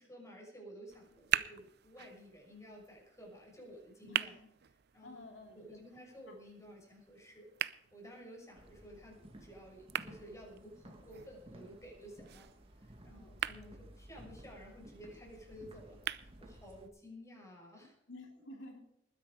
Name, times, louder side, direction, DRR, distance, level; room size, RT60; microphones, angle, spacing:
voice 1, 0.0-4.4 4.9-5.3 5.5-7.5 7.9-12.5 12.8-18.0, equal, 15° left, -1 dB, 6.3 m, -53 dB
sound 1, 0.9-16.9, right 11 dB, 60° right, 0.6 m, -44 dB
voice 2, 4.0-4.5 5.0-5.8 6.3-6.4 13.1-13.4 18.1-18.8, left 1 dB, 85° left, 3 dB, 2.8 m, -52 dB
sound 2, 8.5-16.9, right 1 dB, 30° right, 2.1 m, -56 dB
20.0 x 10.5 x 5.0 m, 0.79 s
head